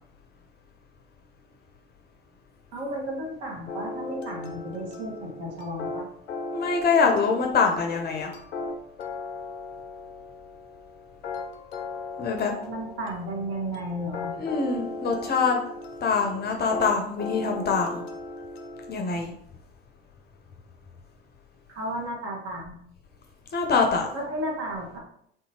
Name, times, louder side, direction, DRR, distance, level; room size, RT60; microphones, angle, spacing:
voice 1, 2.7-6.1 12.7-14.3 21.7-22.8 24.1-25.0, right 1 dB, 50° right, -2 dB, 1.2 m, -33 dB
sound 1, 3.7-19.0, left 3 dB, 90° left, 0.5 m, -37 dB
voice 2, 6.5-8.3 12.2-12.5 14.3-15.6 16.0-18.0 18.9-19.3 23.5-24.1, left 5 dB, 30° left, 3 dB, 0.6 m, -24 dB
3.6 x 2.7 x 2.8 m, 0.70 s
hypercardioid pair, 70°, 31 cm